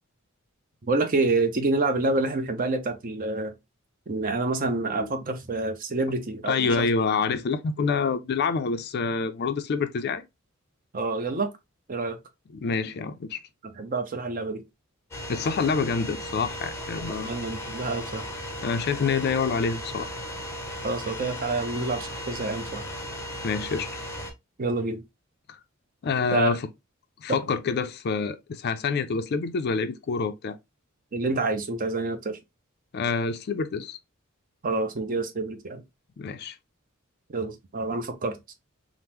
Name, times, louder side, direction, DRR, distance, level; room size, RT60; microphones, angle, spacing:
voice 1, 0.8-3.6 4.1-6.9 10.9-11.5 11.9-12.2 13.6-14.6 17.3-18.3 20.8-22.9 24.6-25.0 26.3-26.6 31.1-32.4 34.6-35.8 37.3-38.4, right 3 dB, 40° right, 0.6 m, -27 dB
voice 2, 6.5-10.3 12.5-13.4 15.3-17.3 18.6-20.1 23.4-23.9 26.0-26.6 27.2-30.6 32.9-34.0 36.2-36.6, left 5 dB, 50° left, 0.4 m, -27 dB
sound 1, 15.1-24.3, equal, 10° left, 0.6 m, -36 dB
3.5 x 2.0 x 2.9 m
head